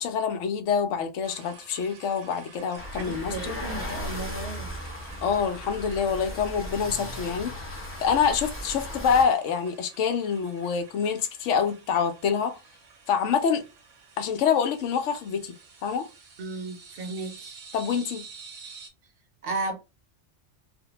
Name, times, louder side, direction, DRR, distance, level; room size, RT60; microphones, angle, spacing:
voice 1, 0.0-3.6 5.2-12.5 13.1-13.6 14.2-15.5 15.8-16.1 17.7-18.2, left 7 dB, 85° left, 0.9 m, -26 dB
sound 1, 1.2-18.9, right 5 dB, 85° right, 1.1 m, -49 dB
sound 2, 2.8-9.2, equal, 15° left, 0.4 m, -36 dB
voice 2, 2.9-4.8 16.4-17.6 19.4-19.7, right 3 dB, 60° right, 0.7 m, -34 dB
2.5 x 2.1 x 2.8 m
omnidirectional pair, 1.2 m